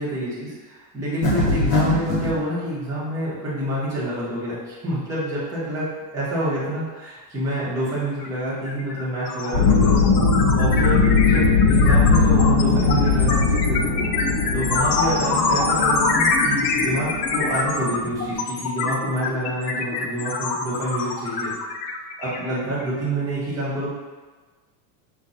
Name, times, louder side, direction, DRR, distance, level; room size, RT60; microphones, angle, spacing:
voice 1, 0.0-5.9 6.1-10.0 10.5-13.9 14.5-21.5 22.2-23.9, right 1 dB, 5° right, -11 dB, 0.8 m, -27 dB
sound 1, 1.2-2.3, left 2 dB, 55° left, 1.2 m, -21 dB
sound 2, 8.2-8.4 8.7-23.0, left 4 dB, 75° left, 0.7 m, -25 dB
sound 3, 9.5-18.3, left 4 dB, 30° left, 1.4 m, -20 dB
5.6 x 2.2 x 3.8 m, 1.3 s
supercardioid pair, 180°, 48 cm